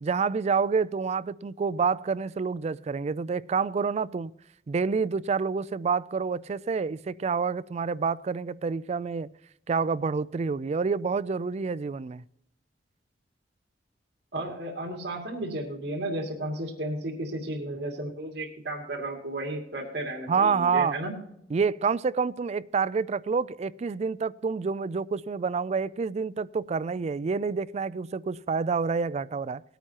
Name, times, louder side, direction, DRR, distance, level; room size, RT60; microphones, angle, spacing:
voice 1, 0.0-4.3 4.7-9.3 9.7-12.2 20.3-21.0 21.5-29.6, right 5 dB, 40° right, 0.3 m, -28 dB
voice 2, 14.3-21.1, right 1 dB, 65° right, 2.5 m, -33 dB
19.0 x 9.1 x 2.9 m
head